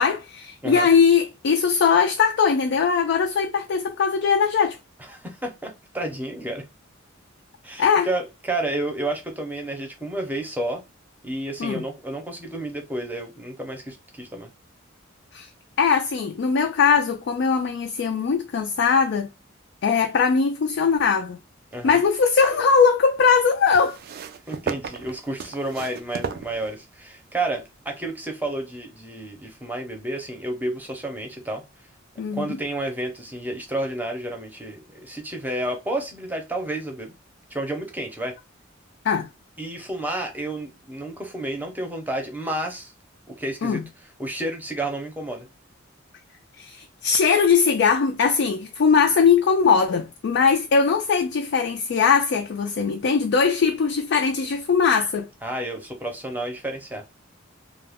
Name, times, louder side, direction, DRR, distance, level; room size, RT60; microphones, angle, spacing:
voice 1, 0.0-4.8 7.8-8.1 11.6-11.8 15.3-15.5 15.8-19.3 19.8-21.4 21.8-24.0 32.2-32.6 39.0-39.3 43.6-43.8 46.6-55.3, left 6 dB, 60° left, 0.3 m, -20 dB
voice 2, 5.1-6.6 7.6-10.8 11.2-14.5 21.7-22.0 24.5-31.6 32.3-37.1 37.5-38.3 39.6-42.9 43.4-43.8 44.2-45.5 55.4-57.0, right 1 dB, 10° right, 0.6 m, -30 dB
sound 1, 21.7-22.6 23.7-27.1 28.1-28.2, right 6 dB, 50° right, 0.3 m, -35 dB
2.3 x 2.1 x 3.4 m
head